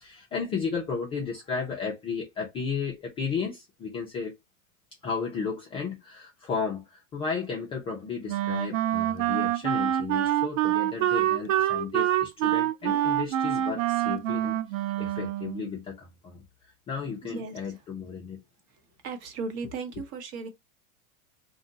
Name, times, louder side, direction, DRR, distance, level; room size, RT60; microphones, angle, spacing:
voice 1, 0.0-4.3 5.0-18.4, left 5 dB, 15° left, 0.3 m, -34 dB
Wind instrument woodwind instrument, 8.3-15.7, right 12 dB, 60° right, 0.5 m, -26 dB
voice 2, 17.2-17.6 19.0-20.5, right 4 dB, 35° right, 0.9 m, -36 dB
2.6 x 2.2 x 3.7 m
hypercardioid pair, 120°, 43 cm